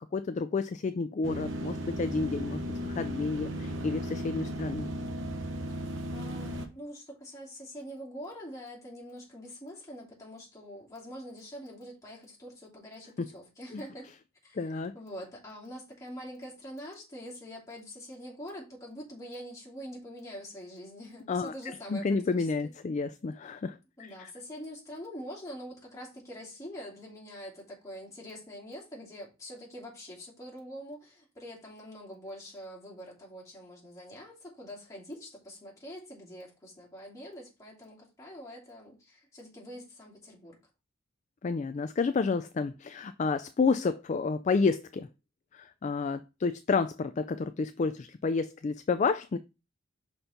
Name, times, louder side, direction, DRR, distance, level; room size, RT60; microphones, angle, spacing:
voice 1, 0.1-4.9 13.7-13.8 14.6-14.9 21.3-24.3 41.4-45.1 45.5-49.4, left 4 dB, 35° left, 0.3 m, -30 dB
sound 1, 1.2-6.7, equal, 70° right, 1.0 m, -35 dB
voice 2, 5.7-14.1 14.4-22.5 24.0-40.6, equal, 15° left, 2.8 m, -45 dB
5.7 x 4.4 x 5.1 m
head